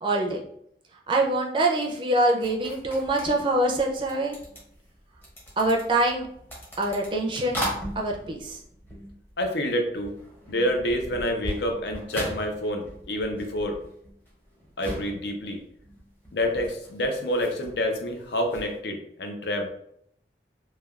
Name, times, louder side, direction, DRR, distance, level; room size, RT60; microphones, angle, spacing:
voice 1, 0.0-0.4 1.1-4.4 5.6-6.3 6.8-7.6 8.0-8.6, right 1 dB, 30° right, 0 dB, 0.4 m, -24 dB
sound 1, 2.4-9.7 10.0-18.8, equal, 10° left, 0.7 m, -39 dB
voice 2, 9.4-10.1 10.5-13.8 14.8-15.6 16.3-19.7, equal, 75° left, 4 dB, 0.5 m, -28 dB
3.2 x 2.2 x 2.3 m, 0.70 s
head